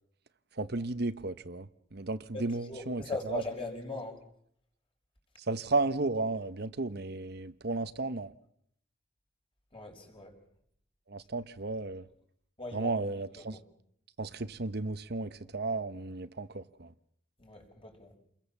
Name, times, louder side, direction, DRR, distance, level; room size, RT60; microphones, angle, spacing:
voice 1, 0.5-3.4 5.4-8.3 11.1-12.1 12.7-13.6 14.2-16.9, right 3 dB, 55° right, 1.0 m, -34 dB
voice 2, 2.3-4.2 9.7-10.3 12.6-12.9 13.4-13.6 17.4-18.1, left 3 dB, 30° left, 6.0 m, -40 dB
29.5 x 22.0 x 7.2 m
head